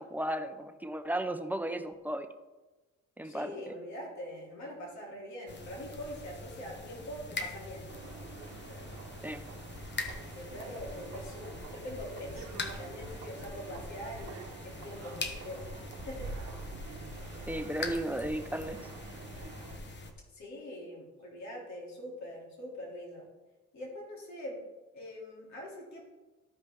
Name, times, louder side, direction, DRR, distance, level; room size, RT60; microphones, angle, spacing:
voice 1, 0.0-2.3 3.2-3.7 9.2-9.4 17.5-18.8, right 1 dB, 5° right, 8 dB, 0.7 m, -35 dB
voice 2, 3.2-7.9 8.7-8.8 10.3-15.7 16.0-16.3 17.8-17.9 20.3-23.3 23.7-24.6 24.9-26.0, equal, 65° left, -3 dB, 3.1 m, -43 dB
sound 1, 5.5-20.1, left 3 dB, 35° left, 1.2 m, -43 dB
sound 2, 7.9-19.8, right 4 dB, 55° right, 1.1 m, -47 dB
14.0 x 5.0 x 3.7 m, 1.2 s
cardioid pair, 90°, 30 cm